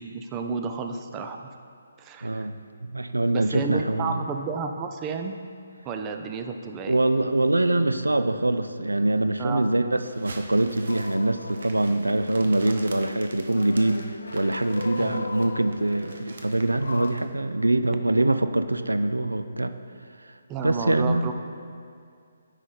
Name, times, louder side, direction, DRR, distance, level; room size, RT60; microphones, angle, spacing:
voice 1, 0.0-1.4 2.0-2.5 3.3-5.3 5.8-7.0 9.4-9.7 15.0-15.3 20.5-21.3, right 5 dB, 20° right, 5 dB, 0.4 m, -31 dB
voice 2, 2.2-2.6 2.8-4.2 6.9-14.0 14.3-19.7 20.6-21.3, right 2 dB, 85° right, 10 dB, 0.3 m, -24 dB
sound 1, 10.0-17.2, right 2 dB, 60° right, 0.8 m, -44 dB
sound 2, 10.9-11.8 12.1-17.1, left 3 dB, 70° left, 0.4 m, -38 dB
9.6 x 4.9 x 4.0 m, 2.3 s
figure-of-eight pair, 140°, 0 cm